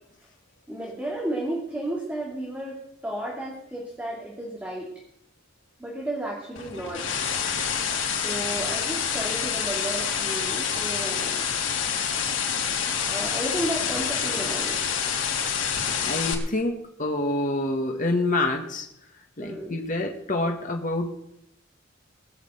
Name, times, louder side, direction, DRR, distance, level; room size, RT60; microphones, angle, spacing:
voice 1, 0.7-4.9 5.8-7.0 8.1-11.5 13.1-14.8 19.4-19.8, right 1 dB, 10° right, -3 dB, 2.5 m, -33 dB
sound 1, 6.6-16.3, left 7 dB, 90° left, 2.5 m, -27 dB
voice 2, 16.0-18.9 19.4-21.1, left 2 dB, 45° left, 1 dB, 1.5 m, -27 dB
19.5 x 6.6 x 7.8 m, 0.81 s
head